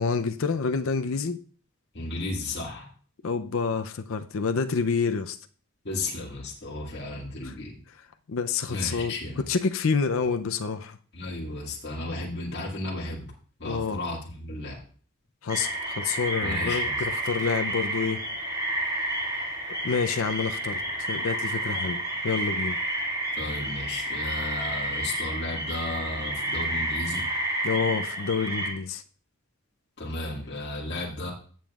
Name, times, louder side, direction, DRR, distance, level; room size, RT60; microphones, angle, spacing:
voice 1, 0.0-1.4 3.2-5.4 7.4-7.5 8.3-11.0 13.6-14.0 15.4-18.2 19.8-22.8 27.6-29.0, left 5 dB, 70° left, 8 dB, 0.5 m, -28 dB
voice 2, 1.9-2.9 5.8-7.7 8.7-9.4 11.1-13.3 13.6-14.8 16.4-17.1 23.4-27.3 30.0-31.3, left 2 dB, 50° left, -3 dB, 2.0 m, -34 dB
sound 1, 15.5-28.7, right 1 dB, 20° right, 2.3 m, -30 dB
15.0 x 7.0 x 2.4 m, 0.43 s
head